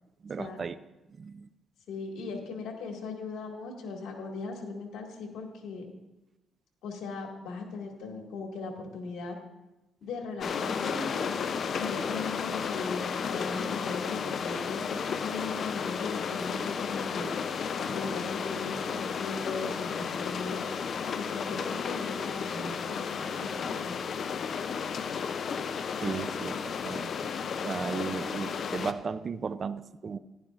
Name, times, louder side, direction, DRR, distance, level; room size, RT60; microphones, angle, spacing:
voice 1, 0.2-0.8 1.2-1.5 26.0-27.1 27.6-30.2, right 5 dB, 45° right, 14 dB, 0.4 m, -35 dB
voice 2, 1.9-5.9 6.8-9.4 10.0-11.3 11.8-17.3 17.8-20.7 21.2-23.9, left 4 dB, 80° left, 1 dB, 2.0 m, -38 dB
sound 1, 10.4-28.9, left 6 dB, 55° left, 0.5 m, -33 dB
15.0 x 11.5 x 2.5 m, 1.0 s
cardioid pair, 90°, 0 cm